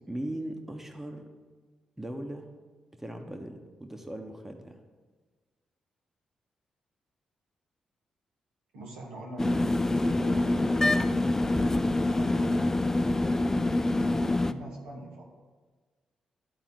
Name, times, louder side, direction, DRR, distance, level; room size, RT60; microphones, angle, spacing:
voice 1, 0.1-1.3 2.0-2.5 3.0-4.8, right 1 dB, 15° right, 4 dB, 1.2 m, -38 dB
voice 2, 8.7-11.2 12.1-12.7 13.7-15.2, right 2 dB, 85° right, -3 dB, 2.0 m, -44 dB
sound 1, 9.4-14.5, left 2 dB, 20° left, 0.5 m, -25 dB
12.0 x 4.1 x 6.0 m, 1.4 s
supercardioid pair, 45°, 2 cm